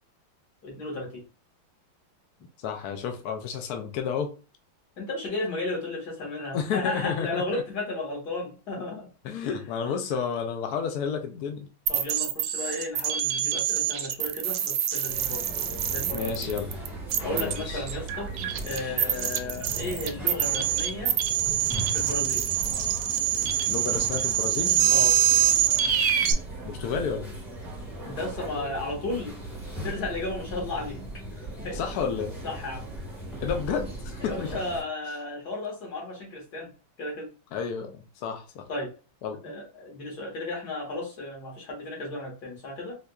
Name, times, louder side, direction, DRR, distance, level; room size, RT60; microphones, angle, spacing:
voice 1, 0.6-1.2 5.0-9.1 9.5-9.6 11.9-15.4 15.9-16.5 17.2-18.3 18.6-21.1 21.9-22.5 24.9-25.2 28.0-29.3 29.7-31.0 31.3-31.8 32.4-32.9 34.2-36.7 37.0-37.3 38.7-38.9 39.4-43.0, left 2 dB, 50° left, -1 dB, 1.9 m, -34 dB
voice 2, 2.6-4.3 6.5-7.6 9.2-11.7 16.1-16.7 17.2-17.8 23.7-24.8 26.6-27.3 31.7-32.3 33.4-34.5 37.5-38.7 39.2-39.4, left 6 dB, 80° left, 6 dB, 0.8 m, -31 dB
sound 1, 11.9-26.3, right 11 dB, 80° right, 1.4 m, -25 dB
sound 2, 15.1-34.8, right 1 dB, ahead, 0.8 m, -38 dB
4.3 x 2.6 x 2.3 m, 0.34 s
omnidirectional pair, 2.3 m